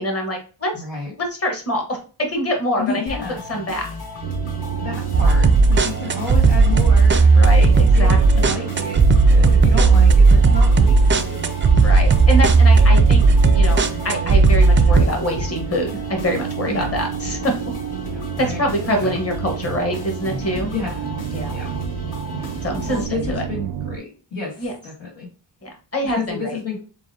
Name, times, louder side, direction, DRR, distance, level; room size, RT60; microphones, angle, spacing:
voice 1, 0.0-0.7 1.2-2.8 3.5-3.9 7.3-8.2 8.5-8.6 11.8-13.2 13.5-17.5 18.4-20.7 21.3-21.6 22.6-23.0 23.3-23.4 24.6-24.7 25.6-26.6, equal, 35° left, 2 dB, 1.3 m, -24 dB
voice 2, 0.7-1.1 2.8-3.4 4.8-7.4 7.9-11.4 16.7-16.9 18.0-19.1 20.7-21.1 21.5-21.7 22.4-25.3 26.1-26.8, left 4 dB, 85° left, -3 dB, 2.2 m, -31 dB
sound 1, 3.1-23.0, left 2 dB, 60° left, 1.1 m, -34 dB
sound 2, 4.2-24.0, right 10 dB, 85° right, 0.5 m, -30 dB
sound 3, 5.1-15.1, right 4 dB, 30° right, 0.4 m, -14 dB
7.2 x 2.5 x 2.8 m, 0.37 s
wide cardioid pair, 125°, 43 cm